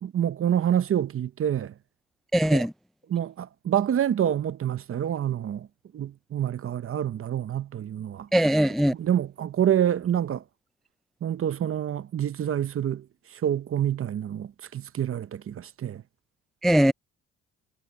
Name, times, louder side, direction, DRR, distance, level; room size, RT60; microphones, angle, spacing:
voice 1, 0.0-1.7 2.5-2.7 3.1-5.7 5.9-8.3 9.0-10.4 11.2-13.1 13.3-16.0, right 10 dB, 45° right, 0.8 m, -27 dB
voice 2, 2.3-2.7 8.3-8.9 16.6-16.9, equal, ahead, 0.4 m, -20 dB
cardioid pair, 90°, 30 cm